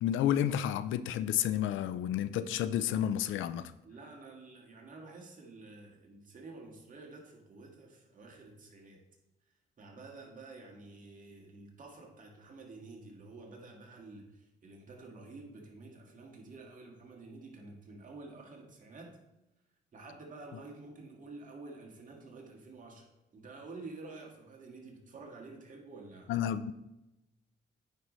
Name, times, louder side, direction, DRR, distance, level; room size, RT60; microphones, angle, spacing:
voice 1, 0.0-3.7 26.3-26.7, left 10 dB, 80° left, 14 dB, 0.5 m, -31 dB
voice 2, 3.8-9.0 9.8-19.1 19.9-23.1 23.3-26.3, right 3 dB, 40° right, 0 dB, 1.9 m, -50 dB
9.1 x 5.3 x 3.1 m, 0.95 s
cardioid pair, 90°, 20 cm